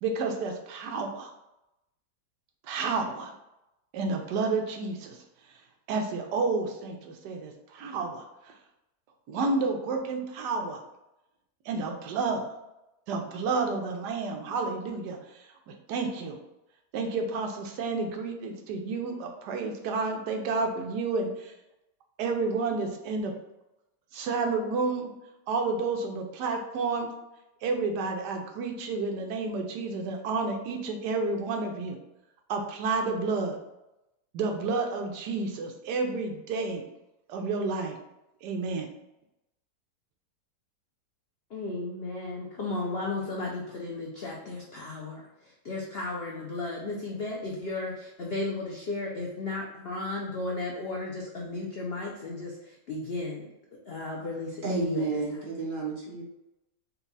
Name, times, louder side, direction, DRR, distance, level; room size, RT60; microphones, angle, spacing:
voice 1, 0.0-1.3 2.7-3.3 3.9-5.2 5.9-8.2 9.3-10.8 11.7-12.4 13.1-15.2 15.7-16.4 16.9-21.5 22.2-23.3 24.1-25.1 25.5-27.1 27.6-32.0 32.5-33.6 34.3-36.8 37.3-38.0 38.4-38.9, right 4 dB, 75° right, 3 dB, 1.2 m, -30 dB
voice 2, 41.5-53.4 53.9-55.2, left 2 dB, 80° left, -2 dB, 0.5 m, -34 dB
voice 3, 54.6-56.2, right 3 dB, 45° right, -3 dB, 0.7 m, -31 dB
4.1 x 2.3 x 4.0 m, 0.90 s
omnidirectional pair, 1.9 m